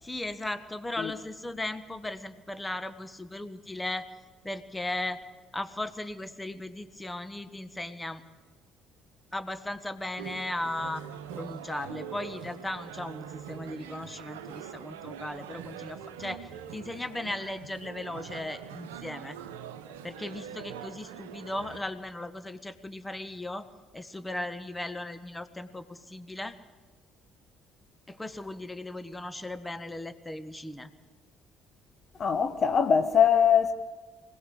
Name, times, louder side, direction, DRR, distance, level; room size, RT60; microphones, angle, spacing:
voice 1, 0.0-4.1 4.4-5.2 5.5-8.2 9.3-11.0 11.3-19.4 20.0-23.7 23.9-26.6 28.1-30.9, left 1 dB, 10° left, 1.4 m, -37 dB
sound 1, 10.2-21.8, right 8 dB, 70° right, 1.0 m, -43 dB
voice 2, 32.2-33.7, left 7 dB, 40° left, 1.1 m, -22 dB
24.5 x 18.0 x 7.9 m
figure-of-eight pair, 50°, 0 cm